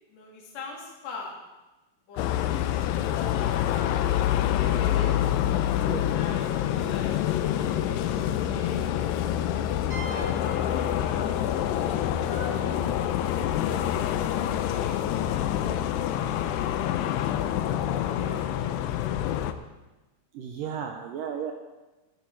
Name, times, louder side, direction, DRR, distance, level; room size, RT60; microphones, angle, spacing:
voice 1, 0.1-1.3 2.1-2.3 2.6-5.1 6.1-9.0 9.9-10.8 11.7-12.9 13.6-18.4, left 3 dB, 45° left, -2 dB, 3.3 m, -42 dB
sound 1, 2.2-19.5, left 11 dB, 85° left, 2.8 m, -26 dB
sound 2, 9.9-13.5, right 3 dB, 35° right, 2.5 m, -45 dB
voice 2, 20.3-21.5, right 8 dB, 75° right, 3 dB, 2.1 m, -34 dB
13.0 x 12.5 x 4.7 m, 1.1 s
omnidirectional pair, 4.7 m